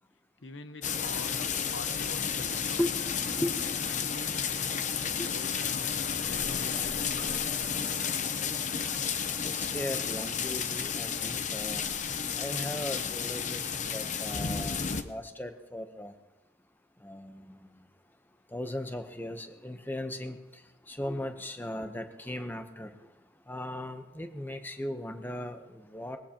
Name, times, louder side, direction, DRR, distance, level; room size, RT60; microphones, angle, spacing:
voice 1, 0.4-2.9 3.6-4.8 5.2-5.8 6.2-7.2, left 3 dB, 85° left, 10 dB, 0.9 m, -45 dB
sound 1, 0.8-15.0, left 7 dB, 40° left, 0.7 m, -32 dB
voice 2, 9.4-11.8 12.4-16.1 17.0-17.7 18.5-20.4 20.9-23.0 23.5-26.2, left 1 dB, 10° left, 7 dB, 0.8 m, -37 dB
21.0 x 15.5 x 2.9 m, 1.0 s
head